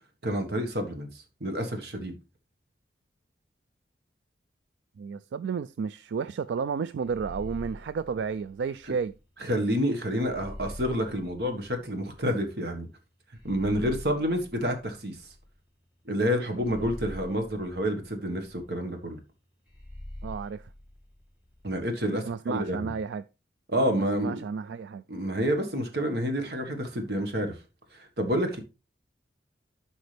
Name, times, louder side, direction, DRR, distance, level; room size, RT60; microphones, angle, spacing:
voice 1, 0.2-1.1 1.4-2.1 9.4-12.9 13.4-15.2 16.0-19.2 21.6-22.9 23.7-24.4 25.1-27.5 28.2-28.6, equal, 65° right, 1.6 m, -28 dB
voice 2, 5.0-9.2 20.2-20.7 22.1-23.2 24.0-25.0, right 6 dB, 85° right, 0.3 m, -32 dB
sound 1, 7.0-9.2 10.2-12.3 13.3-15.7 16.5-18.7 19.7-21.8, left 1 dB, 5° right, 2.1 m, -45 dB
12.0 x 5.2 x 3.4 m
head